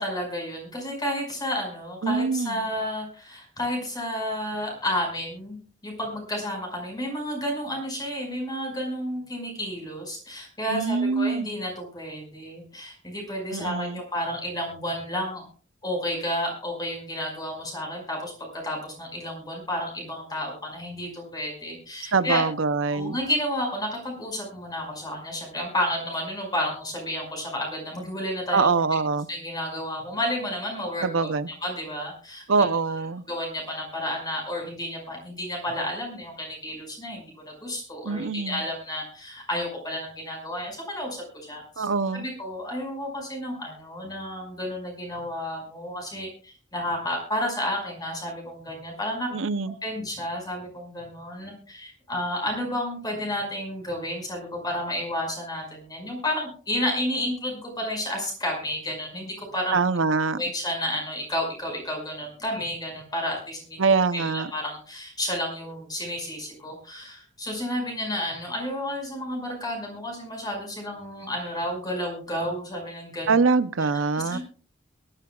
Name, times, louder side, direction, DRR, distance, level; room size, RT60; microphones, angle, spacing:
voice 1, 0.0-15.5 15.8-22.4 22.9-28.7 29.3-31.3 31.6-32.7 33.3-41.9 42.1-49.3 49.8-59.7 60.4-63.9 64.1-73.3 74.1-74.4, left 1 dB, 20° left, 2 dB, 5.5 m, -31 dB
voice 2, 2.0-2.6 10.7-11.5 13.5-14.0 22.1-23.2 28.5-29.3 31.0-31.5 32.5-33.2 38.0-38.6 41.8-42.3 49.3-49.8 59.7-60.4 63.8-64.5 73.3-74.4, right 4 dB, 85° right, 13 dB, 0.7 m, -24 dB
22.5 x 12.0 x 2.4 m, 0.41 s
head